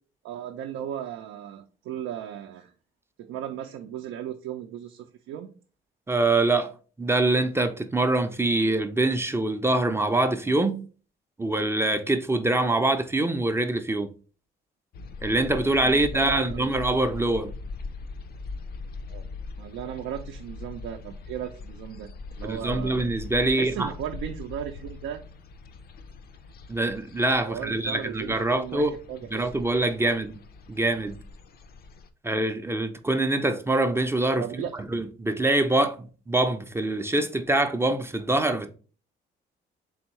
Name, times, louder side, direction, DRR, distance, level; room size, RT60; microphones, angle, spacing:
voice 1, 0.2-2.7 3.2-5.5 15.8-16.8 19.1-19.3 19.6-23.1 23.5-25.2 27.4-29.5 30.0-30.1 34.4-34.7, right 10 dB, 90° right, 0.4 m, -36 dB
voice 2, 6.1-6.7 7.0-10.8 11.4-14.1 15.2-17.5 22.4-23.9 26.7-29.0 29.3-30.4 30.7-31.2 32.2-34.6 34.9-38.7, right 2 dB, 10° right, 0.4 m, -24 dB
sound 1, 14.9-32.1, left 3 dB, 50° left, 0.4 m, -41 dB
3.6 x 3.5 x 3.0 m
cardioid pair, 90°, 20 cm